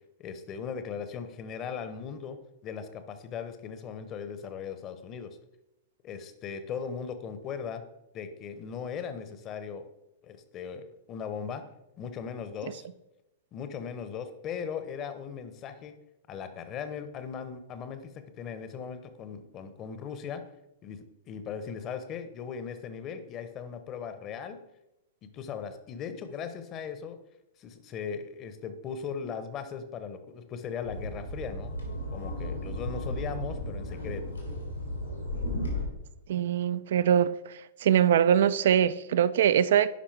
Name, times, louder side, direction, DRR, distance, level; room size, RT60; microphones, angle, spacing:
voice 1, 0.2-2.4 2.6-5.4 6.0-7.8 8.1-9.8 10.2-11.6 12.0-12.9 13.5-15.9 16.3-20.4 20.8-24.6 25.2-27.2 27.6-31.7 32.1-34.2, left 7 dB, 30° left, 0.8 m, -38 dB
sound 1, 30.8-35.8, left 1 dB, 90° left, 2.7 m, -34 dB
voice 2, 36.3-37.3 37.8-39.9, right 9 dB, 60° right, 0.3 m, -22 dB
10.0 x 5.1 x 3.3 m
figure-of-eight pair, 105°, 0 cm